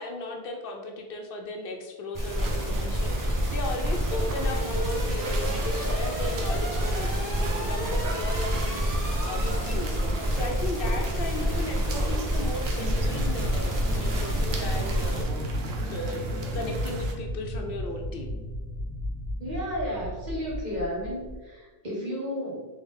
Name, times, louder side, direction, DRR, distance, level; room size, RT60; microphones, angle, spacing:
voice 1, 0.0-10.0 10.3-18.4, left 2 dB, 65° left, 3 dB, 0.7 m, -36 dB
sound 1, 2.1-15.2, equal, 20° right, 0.8 m, -28 dB
sound 2, 2.3-17.1, right 4 dB, 80° right, 0.9 m, -38 dB
sound 3, 12.8-21.3, equal, 20° left, 0.8 m, -34 dB
voice 2, 19.4-22.7, equal, 45° right, -5 dB, 1.4 m, -33 dB
3.5 x 3.5 x 3.5 m, 1.3 s
omnidirectional pair, 1.0 m